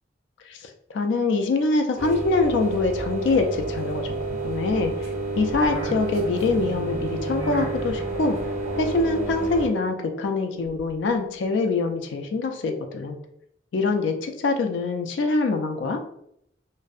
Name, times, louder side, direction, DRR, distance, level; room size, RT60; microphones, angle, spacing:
voice 1, 0.5-4.9 5.4-8.4 8.8-13.2 13.7-16.0, left 3 dB, 80° left, 4 dB, 0.3 m, -24 dB
sound 1, 2.0-9.7, right 3 dB, 40° right, 0.6 m, -30 dB
sound 2, 2.0-11.1, left 1 dB, 60° right, 1.1 m, -38 dB
2.5 x 2.0 x 2.3 m, 0.72 s
head